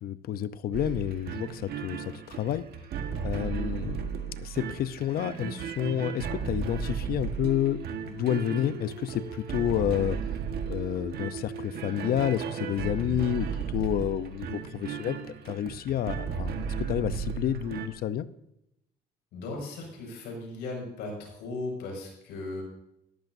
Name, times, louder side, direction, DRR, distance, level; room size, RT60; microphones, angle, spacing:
voice 1, 0.0-2.6 3.2-7.8 8.1-10.2 10.7-13.5 13.7-15.2 15.4-18.3, left 11 dB, 65° left, 14 dB, 0.8 m, -30 dB
sound 1, 0.7-17.9, right 6 dB, 70° right, 1.5 m, -35 dB
voice 2, 19.3-22.6, left 2 dB, 85° left, 1 dB, 6.1 m, -37 dB
18.0 x 14.0 x 2.7 m, 0.83 s
cardioid pair, 110°, 17 cm